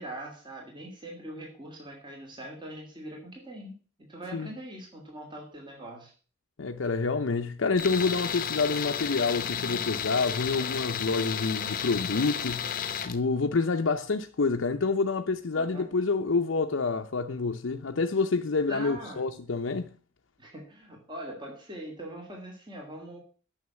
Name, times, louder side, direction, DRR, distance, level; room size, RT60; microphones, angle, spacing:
voice 1, 0.0-3.7 4.0-6.1 15.5-15.9 18.7-19.2 20.4-23.2, right 1 dB, 25° right, 2.7 m, -42 dB
voice 2, 6.6-12.8 13.1-19.9, left 4 dB, 80° left, 0.7 m, -28 dB
Tools, 7.8-13.2, left 8 dB, 45° left, 0.8 m, -32 dB
9.5 x 6.5 x 7.1 m
head